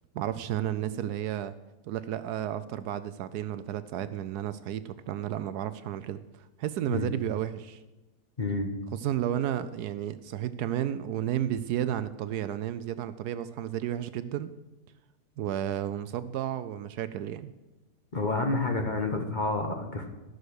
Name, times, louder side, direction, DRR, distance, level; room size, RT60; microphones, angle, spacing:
voice 1, 0.1-1.5 1.9-6.2 6.6-7.8 8.9-14.5 15.4-17.5, right 11 dB, 75° right, 13 dB, 1.0 m, -32 dB
voice 2, 8.4-8.7 18.1-20.1, left 2 dB, 35° left, 3 dB, 1.0 m, -29 dB
13.5 x 6.5 x 6.3 m, 1.1 s
omnidirectional pair, 1.8 m